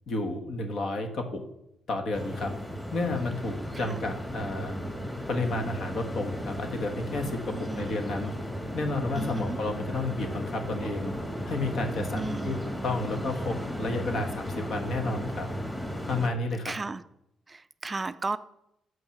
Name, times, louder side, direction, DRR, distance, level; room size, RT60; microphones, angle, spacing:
voice 1, 0.1-1.4 1.9-2.5 2.9-4.8 5.3-8.3 8.7-11.1 11.4-12.6 12.8-15.5 16.1-16.7, left 2 dB, 60° left, 5 dB, 1.3 m, -31 dB
sound 1, 2.1-16.3, equal, 15° left, 2.1 m, -35 dB
voice 2, 7.5-7.9 9.1-9.6 12.1-12.6 16.6-17.0 17.5-18.4, right 3 dB, 25° right, 13 dB, 0.3 m, -34 dB
7.7 x 5.4 x 5.8 m, 0.81 s
cardioid pair, 90°, 0 cm